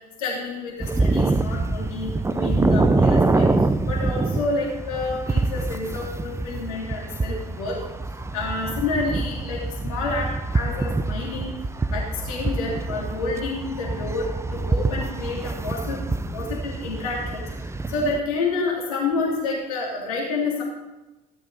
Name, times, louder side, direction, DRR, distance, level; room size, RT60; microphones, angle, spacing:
voice 1, 0.2-3.5 3.9-7.7 8.3-11.5 11.9-16.0 16.3-17.4 17.9-20.6, left 3 dB, 70° left, -3 dB, 3.1 m, -29 dB
sound 1, 0.8-18.2, right 3 dB, 15° right, 0.8 m, -25 dB
17.5 x 11.5 x 4.2 m, 1.1 s
figure-of-eight pair, 55°, 19 cm